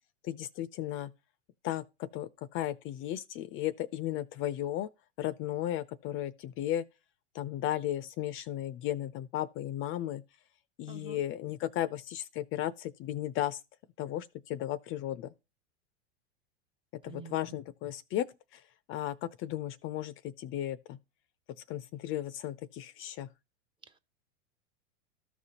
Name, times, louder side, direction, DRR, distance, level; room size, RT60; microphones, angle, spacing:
voice 1, 0.2-1.1 1.6-4.9 5.2-6.8 7.3-10.2 10.8-13.6 14.0-15.3 16.9-21.0 21.7-23.3, left 12 dB, 35° left, 0.5 m, -35 dB
voice 2, 10.8-11.2 17.0-17.5 23.8-24.0, right 6 dB, 15° right, 0.7 m, -49 dB
13.5 x 5.1 x 2.8 m
hypercardioid pair, 110°, 35 cm